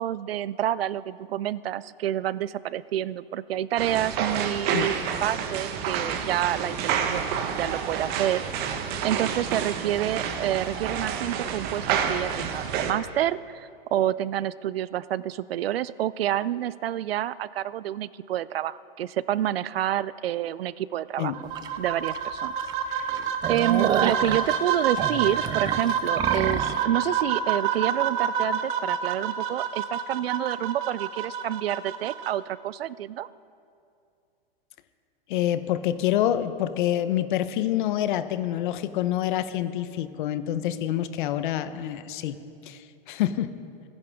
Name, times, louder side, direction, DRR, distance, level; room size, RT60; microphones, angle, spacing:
voice 1, 0.0-7.2 7.6-8.5 9.0-21.3 21.8-22.6 22.9-33.3, right 12 dB, 90° right, 19 dB, 0.5 m, -28 dB
sound 1, 3.8-12.9, right 7 dB, 35° right, 1.1 m, -29 dB
sound 2, 21.3-32.3, right 7 dB, 60° right, 1.2 m, -28 dB
sound 3, 21.6-21.7 22.1-22.2 22.6-22.7 23.1-26.8, right 9 dB, 15° right, 0.3 m, -28 dB
voice 2, 35.3-42.4 42.7-42.8 43.1-43.5, left 12 dB, 55° left, 12 dB, 0.9 m, -26 dB
26.5 x 10.5 x 3.7 m, 2.5 s
hypercardioid pair, 135°, 29 cm